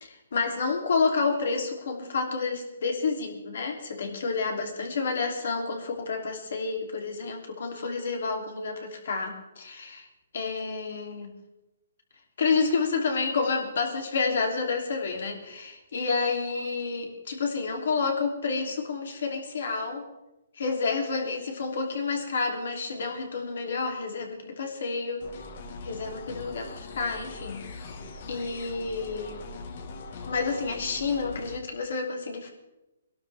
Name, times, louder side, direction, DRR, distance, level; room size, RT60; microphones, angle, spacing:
voice 1, 0.0-10.1 10.3-11.3 12.4-20.0 20.6-25.2 25.8-28.0 28.3-29.4 30.3-32.5, left 4 dB, 65° left, 2 dB, 3.1 m, -29 dB
sound 1, 25.2-31.6, left 3 dB, 45° left, 1.5 m, -41 dB
23.0 x 12.0 x 3.5 m, 0.98 s
hypercardioid pair, 160°, 0 cm